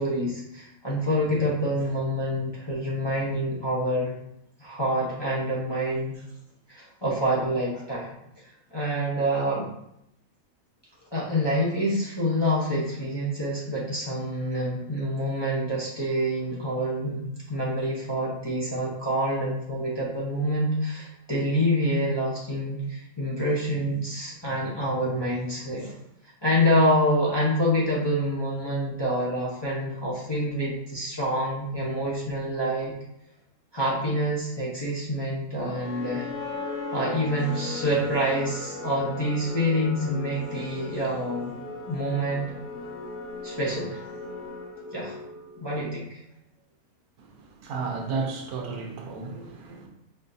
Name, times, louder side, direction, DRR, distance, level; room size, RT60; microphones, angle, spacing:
voice 1, 0.0-4.1 4.6-6.1 6.7-8.1 8.7-9.7 11.1-17.2 17.5-25.9 26.4-32.9 33.7-36.3 36.9-41.5 41.9-42.5 43.4-44.0 44.9-45.2 45.6-46.2 49.3-49.5, equal, 20° left, -7 dB, 0.8 m, -27 dB
sound 1, 35.6-45.8, left 2 dB, 65° left, 1.3 m, -37 dB
voice 2, 47.6-49.9, right 4 dB, 85° right, 2 dB, 1.2 m, -32 dB
5.4 x 2.8 x 2.6 m, 0.79 s
omnidirectional pair, 1.5 m